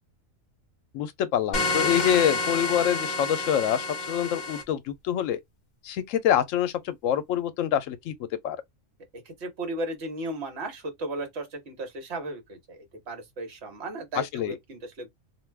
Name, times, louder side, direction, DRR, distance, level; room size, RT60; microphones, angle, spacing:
voice 1, 0.9-5.4 5.8-8.1 8.4-8.6 14.1-14.5, left 10 dB, 80° left, 1.0 m, -26 dB
sound 1, 1.5-4.6, left 3 dB, 40° left, 0.8 m, -28 dB
voice 2, 9.2-12.8 13.1-15.1, right 1 dB, 55° right, 1.2 m, -35 dB
2.5 x 2.2 x 3.3 m
omnidirectional pair, 1.4 m